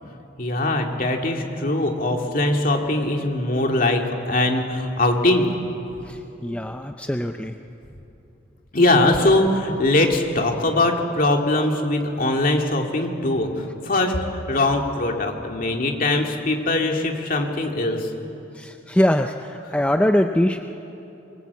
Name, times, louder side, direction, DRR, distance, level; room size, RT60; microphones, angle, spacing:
voice 1, 0.4-5.5 8.7-18.1, left 2 dB, 45° left, 2 dB, 2.5 m, -21 dB
voice 2, 6.1-7.5 18.5-20.6, left 1 dB, 5° left, 5 dB, 0.5 m, -22 dB
24.5 x 23.0 x 8.3 m, 3.0 s
head